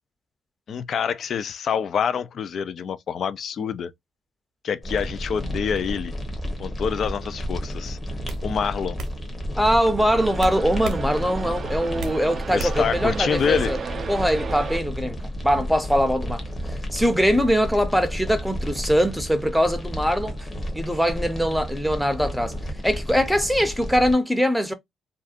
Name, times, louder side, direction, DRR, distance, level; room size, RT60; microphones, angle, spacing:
voice 1, 0.7-3.9 4.6-6.1 6.6-8.0 8.4-9.0 12.5-13.7, left 7 dB, 55° left, 0.3 m, -26 dB
sound 1, 4.8-24.1, equal, 25° left, 1.0 m, -32 dB
sound 2, 7.5-7.7 8.3-8.4 9.0-9.1 10.4-11.0 11.4-12.2 12.6-12.9, right 1 dB, 75° right, 0.8 m, -32 dB
voice 2, 9.6-13.8 14.1-15.2 15.4-16.4 16.7-20.5 20.7-24.7, equal, ahead, 0.6 m, -22 dB
sound 3, 9.9-14.8, right 6 dB, 45° right, 0.4 m, -35 dB
2.6 x 2.2 x 2.4 m
cardioid pair, 90°, 0 cm